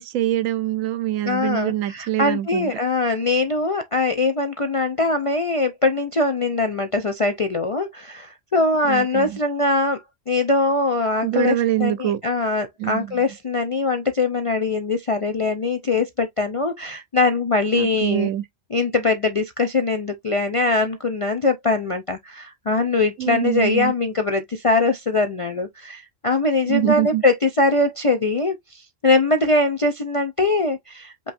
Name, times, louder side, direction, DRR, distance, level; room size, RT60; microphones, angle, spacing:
voice 1, 0.0-2.7 8.9-9.4 11.2-12.2 12.8-13.2 17.8-18.4 23.2-23.9 26.7-27.2, right 13 dB, 90° right, 1.0 m, -24 dB
voice 2, 1.3-10.0 10.3-18.3 18.7-31.3, left 3 dB, 55° left, 0.3 m, -22 dB
5.3 x 3.1 x 2.5 m
omnidirectional pair, 1.3 m